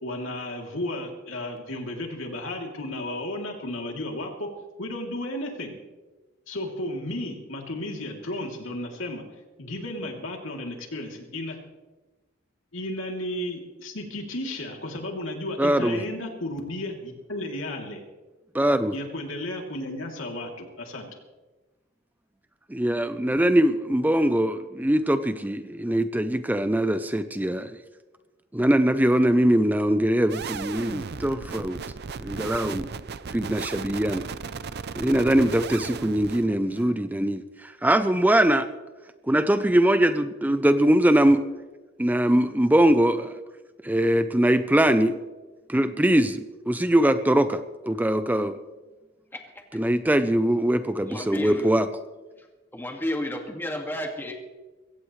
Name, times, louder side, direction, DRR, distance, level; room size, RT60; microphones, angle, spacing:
voice 1, 0.0-4.5 4.8-5.7 6.5-9.2 9.6-11.6 12.7-18.0 18.9-21.1, left 1 dB, 75° left, 1 dB, 3.0 m, -33 dB
voice 2, 15.6-16.0 18.5-18.9 22.7-27.7 28.5-31.8 32.2-32.9 33.3-34.2 35.0-38.7 39.3-41.4 42.0-43.4 43.8-45.2 45.7-47.6 47.9-48.6 49.7-51.9, right 1 dB, 10° right, 10 dB, 0.5 m, -22 dB
sound 1, 30.3-36.9, right 5 dB, 55° right, 0.6 m, -36 dB
voice 3, 49.3-49.6 51.0-51.9 52.4-52.5 52.7-54.4, left 1 dB, 10° left, 2 dB, 1.9 m, -32 dB
22.5 x 16.5 x 3.2 m, 1.2 s
head